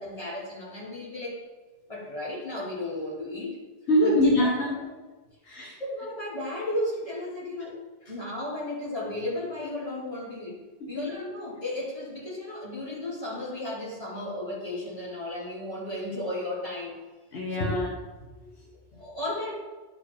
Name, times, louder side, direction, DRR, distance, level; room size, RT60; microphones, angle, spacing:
voice 1, 0.0-1.4 1.9-3.6 4.0-4.1 4.4-4.5 4.8-4.9 5.8-7.8 8.1-10.6 10.9-17.0 17.6-17.7 18.9-19.5, left 1 dB, 30° left, -8 dB, 2.9 m, -34 dB
voice 2, 3.9-4.9 5.4-5.8 8.0-8.1 10.8-11.1 17.3-17.9 18.2-19.0, left 1 dB, 80° left, -3 dB, 1.3 m, -25 dB
11.0 x 4.5 x 3.3 m, 1.2 s
omnidirectional pair, 1.1 m